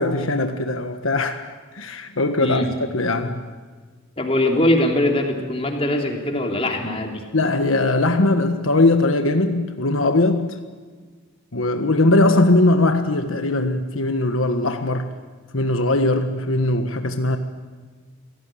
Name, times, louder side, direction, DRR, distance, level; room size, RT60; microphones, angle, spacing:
voice 1, 0.0-1.5 1.7-2.6 2.9-3.4 7.3-10.6 11.5-15.1 15.5-17.4, left 2 dB, 75° left, 1.4 m, -20 dB
voice 2, 2.4-2.7 4.2-7.2, left 1 dB, 30° left, 3.3 m, -21 dB
27.0 x 17.5 x 9.1 m
head